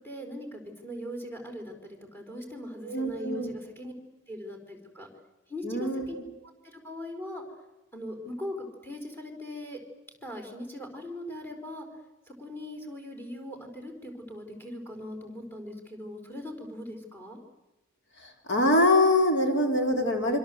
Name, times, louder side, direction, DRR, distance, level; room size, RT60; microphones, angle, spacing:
voice 1, 0.0-3.9 4.3-5.1 5.5-7.4 7.9-9.8 10.2-11.9 12.3-17.4, left 1 dB, 10° left, 5 dB, 4.8 m, -40 dB
voice 2, 2.8-3.5 5.6-6.2 18.2-20.4, left 1 dB, 60° left, 4 dB, 3.7 m, -24 dB
26.5 x 26.0 x 8.0 m, 1.1 s
head